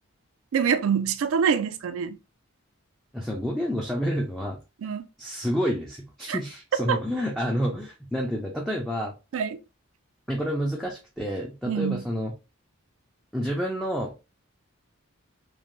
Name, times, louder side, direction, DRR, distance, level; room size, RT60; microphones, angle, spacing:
voice 1, 0.5-2.2 4.8-5.1 6.3-6.4 6.9-7.0 9.3-9.6 11.7-12.0, right 7 dB, 70° right, 0.4 m, -25 dB
voice 2, 3.1-4.6 5.2-9.1 10.3-12.3 13.3-14.1, equal, ahead, 0.4 m, -29 dB
3.1 x 2.1 x 2.6 m
head